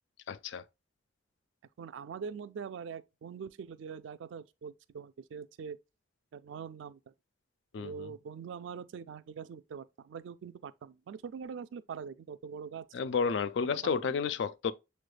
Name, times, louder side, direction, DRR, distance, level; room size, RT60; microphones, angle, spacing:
voice 1, 0.3-0.6 7.7-8.1 12.9-14.7, left 5 dB, 65° left, 0.3 m, -31 dB
voice 2, 1.8-5.8 6.3-7.1 7.8-12.9 13.6-13.8, right 6 dB, 70° right, 0.3 m, -43 dB
6.7 x 3.2 x 2.2 m
head